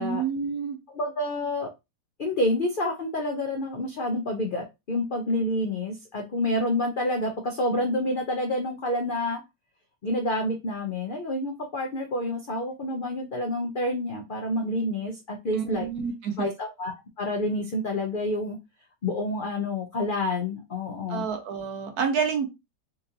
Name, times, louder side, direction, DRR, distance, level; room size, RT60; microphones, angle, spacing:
voice 1, 0.0-0.8 15.5-16.5 21.1-22.5, right 6 dB, 65° right, 5 dB, 1.3 m, -28 dB
voice 2, 0.9-1.7 2.2-9.4 10.0-15.9 16.4-18.6 19.0-21.3, left 1 dB, 75° left, 1 dB, 0.4 m, -28 dB
4.2 x 2.5 x 2.7 m, 0.23 s
omnidirectional pair, 1.8 m